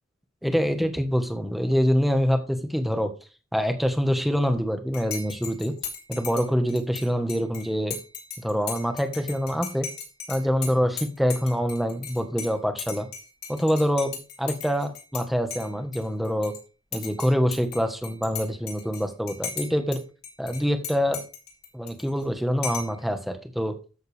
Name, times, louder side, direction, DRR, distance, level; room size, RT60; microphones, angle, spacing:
voice 1, 0.4-3.1 3.5-5.7 6.1-7.9 8.4-9.9 10.3-13.1 13.5-16.5 16.9-20.0 20.4-21.2 21.7-23.7, equal, ahead, 6 dB, 1.4 m, -25 dB
Dishes pots and pans / Cutlery silverware / Chink clink, 4.9-15.2 15.5-16.6 16.9-20.0 20.2-22.2 22.6-23.0, left 6 dB, 55° left, 4.4 m, -38 dB
13.5 x 7.9 x 3.5 m, 0.34 s
head